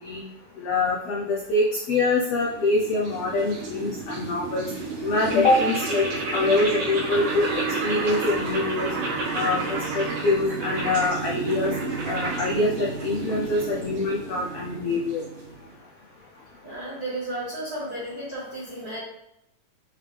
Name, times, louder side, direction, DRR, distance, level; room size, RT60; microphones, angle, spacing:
voice 1, 0.6-4.7 5.0-6.0 6.3-7.5 7.8-8.9 9.3-11.7 12.0-15.2, left 2 dB, 75° left, -3 dB, 1.4 m, -24 dB
sound 1, 2.2-15.7, right 3 dB, 80° right, 3.6 m, -31 dB
voice 2, 16.6-19.0, right 1 dB, 45° right, -8 dB, 1.2 m, -34 dB
8.1 x 3.5 x 3.4 m, 0.79 s
omnidirectional pair, 3.8 m